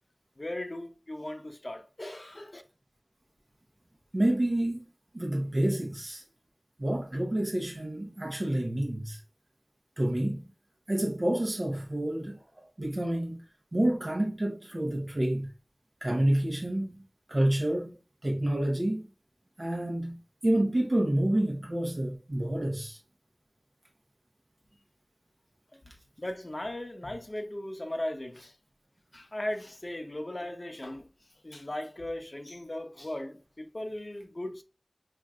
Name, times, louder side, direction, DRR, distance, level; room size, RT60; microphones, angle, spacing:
voice 1, 0.4-2.6 25.7-25.8 26.2-28.6 29.1-31.1 31.4-34.6, left 1 dB, 50° left, 0.7 m, -37 dB
voice 2, 4.1-4.8 5.1-6.2 6.8-9.2 10.0-10.5 10.9-12.4 12.8-13.4 13.7-15.5 16.0-17.0 17.3-18.0 18.2-19.0 19.6-20.2 20.4-23.0, right 1 dB, 60° right, 0.9 m, -28 dB
5.8 x 2.5 x 2.3 m
wide cardioid pair, 45°, 0 cm